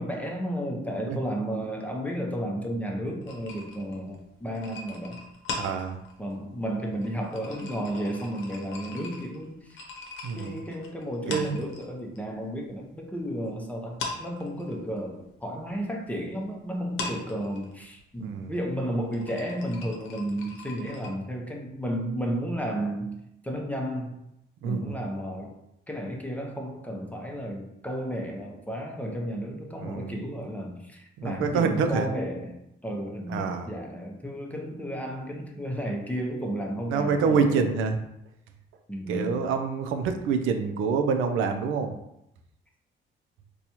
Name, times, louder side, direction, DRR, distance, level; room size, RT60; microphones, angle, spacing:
voice 1, 0.0-5.2 6.2-9.8 10.3-23.2 23.4-24.2 24.6-25.6 25.9-37.6 38.9-39.4, equal, 5° left, 1 dB, 0.6 m, -33 dB
sound 1, 3.2-12.2 12.5-13.5 13.8-21.1, left 3 dB, 75° left, 0.8 m, -40 dB
voice 2, 5.6-6.0 10.2-10.6 11.3-11.6 18.2-18.5 24.6-25.0 29.8-30.2 31.2-32.1 33.3-33.7 36.9-38.0 39.1-41.9, right 5 dB, 85° right, 6 dB, 0.4 m, -26 dB
4.0 x 2.3 x 2.9 m, 0.82 s
cardioid pair, 90°, 20 cm